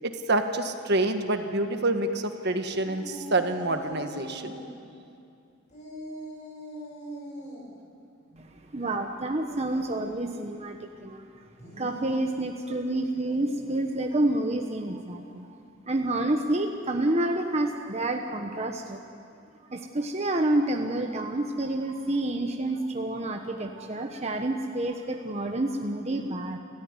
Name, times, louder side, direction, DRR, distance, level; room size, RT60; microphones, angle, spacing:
voice 1, 0.0-4.6, right 2 dB, 55° right, 6 dB, 1.6 m, -27 dB
sound 1, 2.7-4.7 5.7-7.6 11.5-13.7, equal, 35° left, 7.8 m, -41 dB
voice 2, 8.7-11.2 11.8-15.6 15.9-19.0 19.7-26.6, right 1 dB, 30° right, 3 dB, 1.2 m, -28 dB
29.5 x 14.5 x 9.8 m, 2.4 s
head